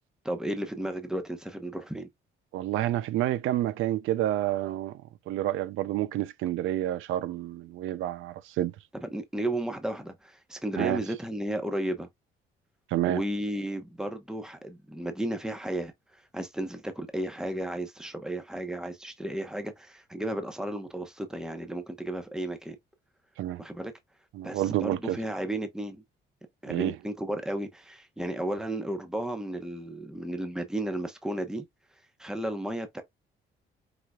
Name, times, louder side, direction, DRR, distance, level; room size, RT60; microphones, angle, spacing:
voice 1, 0.2-2.1 9.0-12.1 13.0-22.8 23.6-23.9 24.4-26.0 26.6-31.6 32.2-33.0, right 1 dB, 5° right, 1.0 m, -33 dB
voice 2, 2.5-8.7 10.8-11.0 12.9-13.2 23.4-23.6 24.3-25.2 26.7-26.9, right 13 dB, 85° right, 0.5 m, -29 dB
4.9 x 3.8 x 2.3 m
cardioid pair, 90°, 20 cm